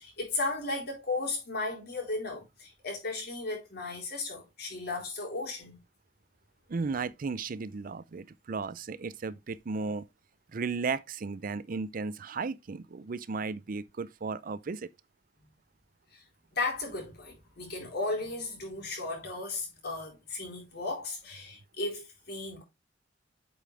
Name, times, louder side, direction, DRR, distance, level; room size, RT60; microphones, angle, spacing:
voice 1, 0.0-5.8 16.1-16.2 16.5-22.6, left 3 dB, 60° left, 4.3 m, -35 dB
voice 2, 6.7-10.0 10.5-14.9, right 4 dB, 50° right, 0.5 m, -35 dB
8.4 x 5.5 x 3.3 m
head